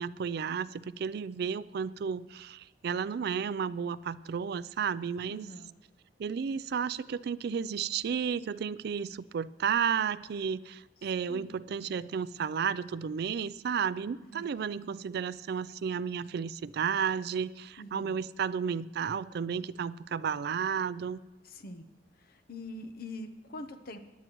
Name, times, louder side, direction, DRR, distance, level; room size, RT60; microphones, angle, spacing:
voice 1, 0.0-5.5 6.2-21.2, right 7 dB, 60° right, 16 dB, 0.3 m, -32 dB
voice 2, 5.3-5.7 11.0-11.6 14.3-14.5 17.8-18.2 21.4-21.8 22.2-24.0, left 2 dB, 55° left, 9 dB, 0.8 m, -44 dB
18.5 x 10.5 x 3.0 m, 1.1 s
head